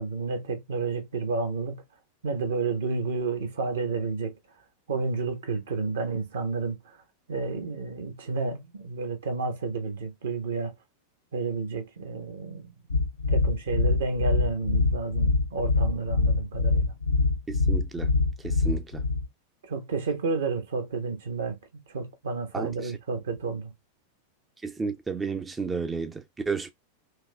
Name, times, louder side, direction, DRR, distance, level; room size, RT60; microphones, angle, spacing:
voice 1, 0.0-1.8 2.2-4.3 4.9-6.8 7.3-10.7 11.3-12.7 13.3-16.9 19.7-21.6 21.9-23.7, right 4 dB, 65° right, 1.1 m, -30 dB
sound 1, 12.9-19.3, left 3 dB, 80° left, 0.6 m, -24 dB
voice 2, 17.5-18.1 18.4-19.0 22.5-22.9 24.6-26.7, right 4 dB, 15° right, 0.5 m, -32 dB
4.7 x 2.7 x 2.3 m
figure-of-eight pair, 90°, 0 cm